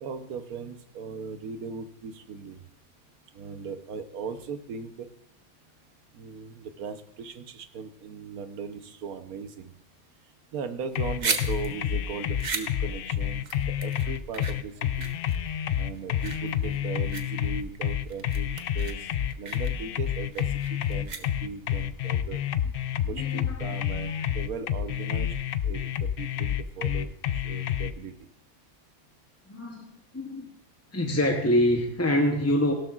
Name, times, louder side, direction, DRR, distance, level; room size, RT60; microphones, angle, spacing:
voice 1, 0.0-2.6 3.3-5.1 6.1-9.8 10.5-15.1 15.7-19.1 19.4-22.4 23.0-25.3 25.6-28.3, right 5 dB, 80° right, 9 dB, 1.3 m, -38 dB
sound 1, 10.8-21.7, right 4 dB, 35° right, 0.8 m, -37 dB
sound 2, 10.9-27.9, left 10 dB, 85° left, 0.5 m, -29 dB
voice 2, 23.1-23.6 29.5-30.5 30.9-32.7, left 1 dB, 15° left, 2 dB, 0.6 m, -25 dB
16.5 x 12.0 x 2.4 m, 0.72 s
omnidirectional pair, 1.5 m